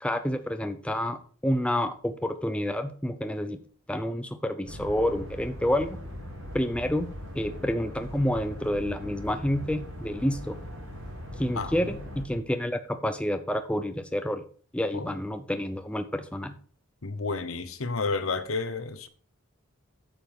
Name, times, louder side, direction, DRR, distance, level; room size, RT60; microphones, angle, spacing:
voice 1, 0.0-3.6 3.9-6.0 6.5-10.6 11.4-14.4 14.7-16.6, left 1 dB, 5° left, 0.6 m, -29 dB
sound 1, 4.6-12.2, equal, 85° right, 4.7 m, -40 dB
voice 2, 17.0-19.1, left 4 dB, 75° left, 1.1 m, -31 dB
9.1 x 7.1 x 4.8 m
head